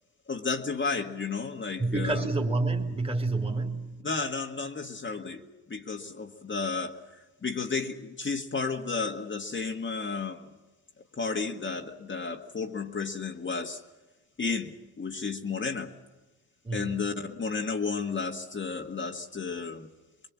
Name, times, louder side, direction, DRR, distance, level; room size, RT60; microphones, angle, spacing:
voice 1, 0.3-2.2 4.0-10.5 11.2-13.8 14.4-15.9 16.7-19.9, left 4 dB, 30° left, 1.8 m, -32 dB
voice 2, 1.8-4.0 16.6-17.0, right 3 dB, 15° right, 2.9 m, -28 dB
23.0 x 22.5 x 7.4 m
supercardioid pair, 75°, 40 cm